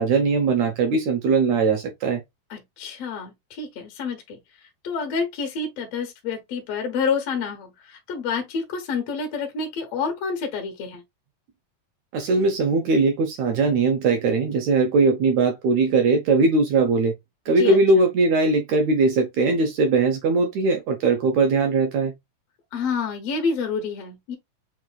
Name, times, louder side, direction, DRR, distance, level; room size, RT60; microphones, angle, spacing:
voice 1, 0.0-2.2 12.1-17.1 17.5-22.1, right 3 dB, 75° right, 1.6 m, -20 dB
voice 2, 2.5-4.4 4.8-11.0 17.6-18.1 22.7-24.4, left 5 dB, 70° left, 1.5 m, -28 dB
7.4 x 2.5 x 2.2 m
omnidirectional pair, 4.0 m